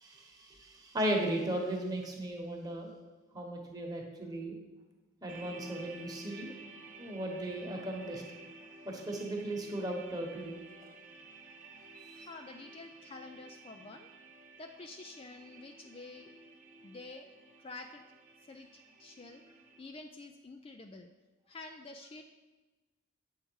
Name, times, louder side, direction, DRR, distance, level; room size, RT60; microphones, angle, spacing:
voice 1, 0.0-2.9 3.3-4.5 5.2-6.5 7.0-8.2 8.8-10.6 12.0-12.3, right 1 dB, 20° right, 0 dB, 1.2 m, -36 dB
sound 1, 5.3-19.8, right 2 dB, 35° right, 1.0 m, -52 dB
voice 2, 12.1-14.1 14.6-16.3 16.8-17.3 17.6-18.1 18.5-19.4 19.8-21.1 21.5-22.2, left 3 dB, 25° left, 4 dB, 0.4 m, -48 dB
9.0 x 6.5 x 4.6 m, 1.2 s
head